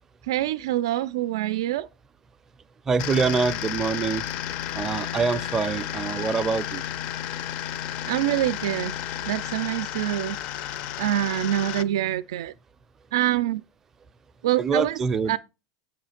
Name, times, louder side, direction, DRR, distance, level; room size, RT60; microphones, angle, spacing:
voice 1, 0.2-1.9 8.1-9.0 9.3-10.7 11.0-12.5 13.1-13.6 14.4-15.0 15.3-15.4, right 13 dB, 90° right, 0.3 m, -25 dB
voice 2, 2.9-4.2 4.7-6.8 14.6-15.4, right 5 dB, 15° right, 0.4 m, -25 dB
sound 1, 3.0-11.8, left 11 dB, 45° left, 0.4 m, -32 dB
6.9 x 3.1 x 5.8 m
supercardioid pair, 155°, 2 cm